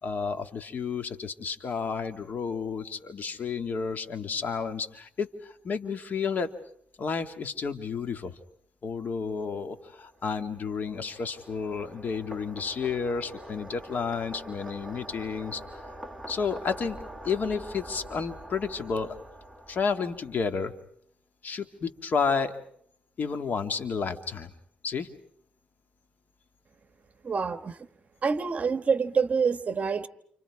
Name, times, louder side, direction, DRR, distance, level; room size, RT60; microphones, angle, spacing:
voice 1, 0.0-6.5 7.0-8.4 8.8-15.6 16.3-17.0 17.2-19.1 19.7-20.7 21.4-22.5 23.2-24.5 24.8-25.1, left 5 dB, 55° left, 8 dB, 2.1 m, -31 dB
sound 1, 9.9-20.6, right 1 dB, ahead, 2.1 m, -45 dB
voice 2, 27.2-27.8 28.2-30.1, right 5 dB, 40° right, 11 dB, 1.4 m, -26 dB
29.5 x 28.0 x 4.8 m, 0.67 s
cardioid pair, 95°, 4 cm